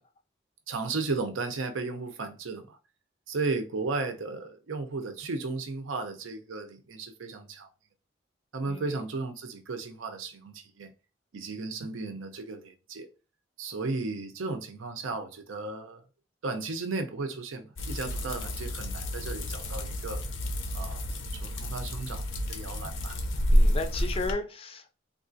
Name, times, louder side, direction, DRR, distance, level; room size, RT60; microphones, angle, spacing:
voice 1, 0.7-2.8 3.3-7.7 8.5-10.9 11.3-13.1 13.6-16.0 16.4-20.2 20.7-21.0 21.4-23.2, right 3 dB, 85° right, 0.6 m, -35 dB
sound 1, 17.8-24.3, equal, 75° left, 0.6 m, -29 dB
voice 2, 23.5-24.9, left 3 dB, 30° left, 0.4 m, -34 dB
3.6 x 2.4 x 2.5 m
head